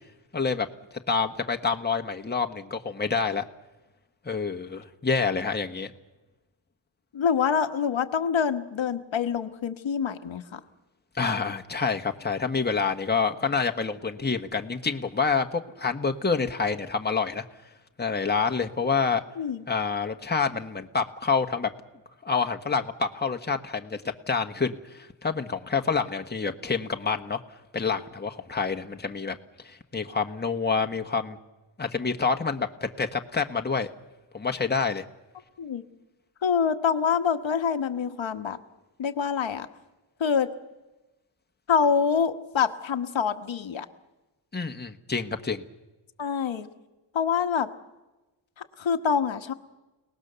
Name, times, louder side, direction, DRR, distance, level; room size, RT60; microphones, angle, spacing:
voice 1, 0.3-0.7 1.1-3.4 4.2-5.9 11.1-17.4 18.0-19.2 19.7-21.7 22.2-24.0 24.3-27.4 27.7-29.3 29.6-31.4 31.8-33.9 34.3-35.0 44.5-45.6, left 4 dB, 20° left, 5 dB, 1.4 m, -27 dB
voice 2, 7.1-10.6 19.4-19.6 35.6-35.8 36.4-38.6 39.0-39.7 40.2-40.5 41.7-43.8 46.2-46.7 47.1-47.7 48.6-49.5, left 6 dB, 70° left, 7 dB, 1.4 m, -26 dB
30.0 x 19.0 x 6.9 m, 1.1 s
cardioid pair, 70°, 47 cm